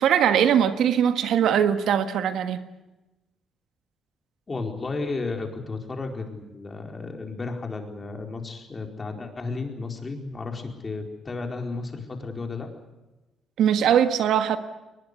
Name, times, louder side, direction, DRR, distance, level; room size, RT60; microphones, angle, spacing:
voice 1, 0.0-2.6 13.6-14.6, right 9 dB, 75° right, 1.5 m, -21 dB
voice 2, 4.5-12.7, left 3 dB, 30° left, 4.6 m, -33 dB
21.5 x 21.0 x 8.2 m
cardioid pair, 90°, 0 cm